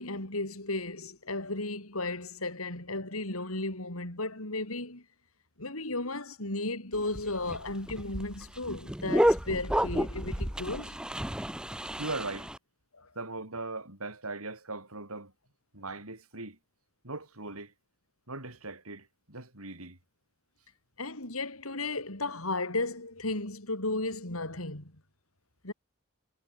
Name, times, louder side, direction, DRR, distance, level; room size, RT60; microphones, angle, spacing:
voice 1, 0.0-5.0 5.6-11.0 12.9-13.1 21.0-24.9 25.6-25.7, left 2 dB, 85° left, 5.7 m, -34 dB
sound 1, 6.9-12.6, equal, 5° right, 0.7 m, -30 dB
voice 2, 12.0-12.5 13.1-15.3 15.7-16.6 17.0-17.7 18.3-20.0, right 3 dB, 90° right, 8.0 m, -39 dB
head